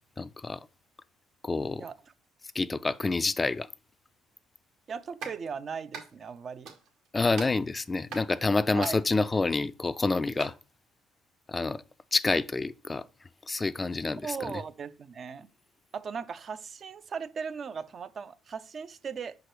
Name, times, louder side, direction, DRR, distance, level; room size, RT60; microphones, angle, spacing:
voice 1, 0.2-0.6 1.4-1.8 2.5-3.7 7.1-10.5 11.5-11.8 12.1-13.0 13.5-14.5, left 3 dB, 25° left, 0.4 m, -28 dB
voice 2, 4.9-6.7 8.7-9.0 14.2-15.5 15.9-19.4, right 6 dB, 45° right, 0.5 m, -38 dB
sound 1, 5.2-5.4 5.9-6.4 6.6-7.1 7.3-8.3 8.8-9.1 10.3-10.5, right 5 dB, 75° right, 2.0 m, -42 dB
5.9 x 4.9 x 4.6 m
hypercardioid pair, 60°, 0 cm